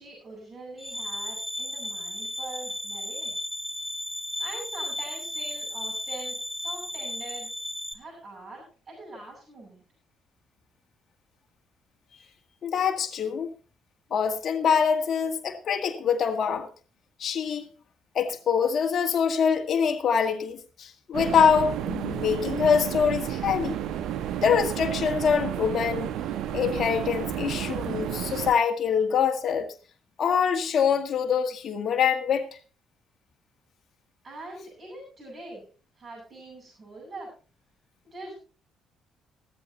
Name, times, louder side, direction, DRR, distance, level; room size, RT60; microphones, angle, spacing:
voice 1, 0.0-3.3 4.4-7.5 7.9-9.8 34.2-35.6 36.0-37.3 38.0-38.3, right 2 dB, 45° right, 7.6 m, -43 dB
sound 1, 0.8-7.9, left 1 dB, ahead, 2.0 m, -34 dB
voice 2, 12.6-13.5 14.1-16.7 17.2-17.7 18.1-23.7 24.4-26.1 26.5-29.7 30.2-32.5, left 7 dB, 50° left, 1.8 m, -24 dB
sound 2, 21.1-28.5, right 10 dB, 60° right, 0.9 m, -31 dB
15.0 x 14.5 x 3.0 m
figure-of-eight pair, 45°, 0 cm